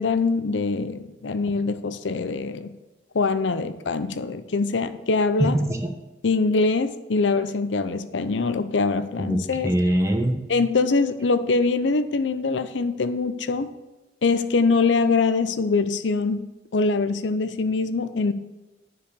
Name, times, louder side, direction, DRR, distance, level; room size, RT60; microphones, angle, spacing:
voice 1, 0.0-2.7 3.1-5.6 6.2-9.7 10.5-13.7 14.2-16.4 16.7-18.3, left 4 dB, 80° left, 11 dB, 0.6 m, -23 dB
voice 2, 5.4-5.9 9.2-10.4, right 1 dB, 15° right, 4 dB, 0.9 m, -23 dB
10.0 x 4.8 x 6.7 m, 1.1 s
head